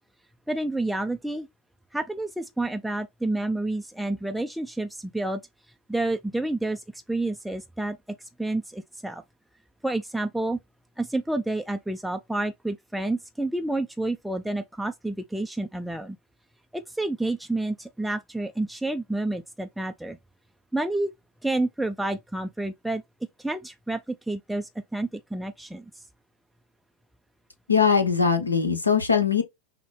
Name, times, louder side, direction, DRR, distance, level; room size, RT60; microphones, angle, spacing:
voice 1, 0.5-1.5 1.9-5.4 5.9-9.2 9.8-10.6 11.0-16.2 16.7-20.2 20.7-21.1 21.4-23.0 23.4-25.8, right 2 dB, ahead, 0.3 m, -29 dB
voice 2, 27.7-29.4, left 6 dB, 80° left, 0.9 m, -21 dB
6.0 x 2.1 x 3.2 m
figure-of-eight pair, 90°, 0 cm